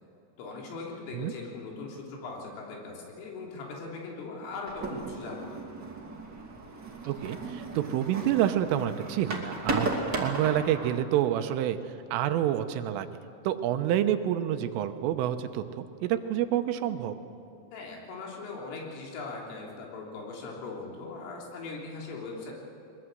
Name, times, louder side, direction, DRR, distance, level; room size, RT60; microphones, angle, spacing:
voice 1, 0.4-5.7 17.7-22.5, left 3 dB, 85° left, -1 dB, 6.1 m, -40 dB
sound 1, 4.7-11.0, right 3 dB, 35° right, 2.0 m, -35 dB
voice 2, 7.1-11.8 12.1-13.1 13.5-17.2, right 11 dB, 90° right, 9 dB, 3.5 m, -28 dB
22.0 x 21.5 x 8.0 m, 2.8 s
omnidirectional pair, 5.7 m